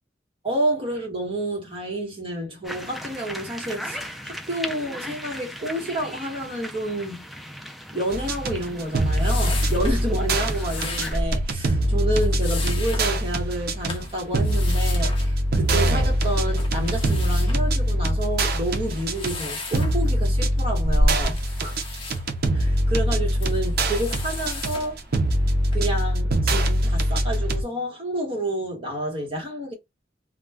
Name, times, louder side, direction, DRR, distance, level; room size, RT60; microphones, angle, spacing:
voice 1, 0.4-7.2 7.9-21.8 22.5-25.0 25.7-29.7, right 1 dB, 30° right, 1.2 m, -29 dB
sound 1, 2.6-11.2, equal, ahead, 0.3 m, -38 dB
sound 2, 8.1-27.6, right 1 dB, 55° right, 0.5 m, -23 dB
sound 3, 8.8-25.8, left 1 dB, 30° left, 0.7 m, -33 dB
2.3 x 2.2 x 3.4 m
head